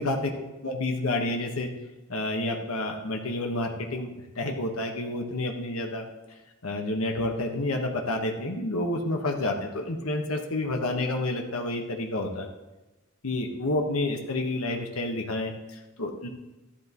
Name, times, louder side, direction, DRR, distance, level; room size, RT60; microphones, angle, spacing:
voice 1, 0.0-1.7 2.1-4.1 4.3-6.0 6.6-12.5 13.2-16.3, left 2 dB, 90° left, 2 dB, 1.3 m, -29 dB
14.0 x 11.5 x 3.0 m, 1.1 s
head